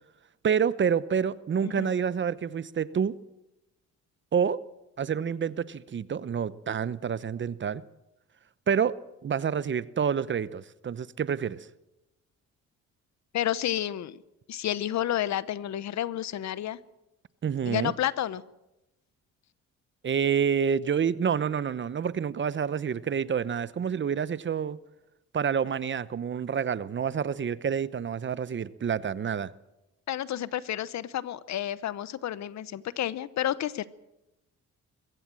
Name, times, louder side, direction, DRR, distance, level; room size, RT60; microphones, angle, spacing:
voice 1, 0.4-3.2 4.3-4.6 5.0-7.8 8.7-9.0 9.2-11.6 17.4-17.9 20.0-24.8 25.3-29.5, right 7 dB, 40° right, 0.8 m, -28 dB
voice 2, 1.6-1.9 13.3-14.2 14.5-16.8 17.6-18.4 30.1-33.8, left 11 dB, 65° left, 0.9 m, -30 dB
22.5 x 16.0 x 7.6 m
cardioid pair, 90°, 30 cm